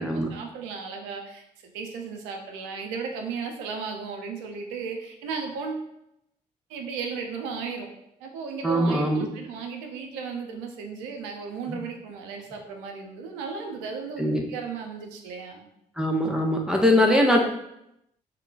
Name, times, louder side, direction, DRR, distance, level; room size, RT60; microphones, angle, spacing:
voice 1, 0.0-5.9 6.7-7.9 8.2-14.2 14.5-15.7, right 5 dB, 90° right, 3 dB, 0.4 m, -35 dB
voice 2, 8.6-9.3 11.7-11.8 14.2-14.4 16.0-17.4, left 1 dB, 5° right, 0 dB, 0.6 m, -22 dB
2.2 x 2.1 x 3.8 m, 0.81 s
hypercardioid pair, 45°, 18 cm